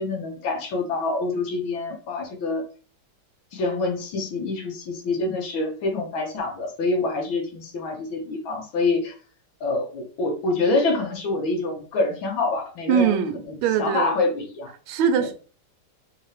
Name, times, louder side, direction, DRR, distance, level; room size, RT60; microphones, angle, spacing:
voice 1, 0.0-2.6 3.5-9.1 9.6-13.2 13.5-14.7 15.2-15.3, left 3 dB, 70° left, 1.7 m, -26 dB
voice 2, 12.9-14.1 14.9-15.3, right 7 dB, 75° right, 1.4 m, -22 dB
4.2 x 2.8 x 3.2 m
omnidirectional pair, 2.4 m